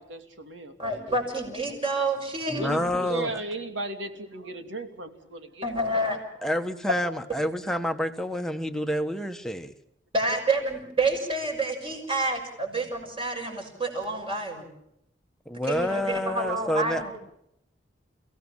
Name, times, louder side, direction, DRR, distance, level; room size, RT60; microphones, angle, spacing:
voice 1, 0.0-1.1 2.5-5.9 12.7-12.9, right 2 dB, 85° right, 6 dB, 2.8 m, -36 dB
voice 2, 0.8-3.0 5.6-6.2 10.1-14.7 15.6-17.2, right 2 dB, 30° right, 2 dB, 6.2 m, -28 dB
voice 3, 2.5-3.4 6.4-9.7 15.4-17.0, left 1 dB, 5° left, 6 dB, 1.3 m, -28 dB
30.0 x 17.0 x 7.4 m, 0.80 s
head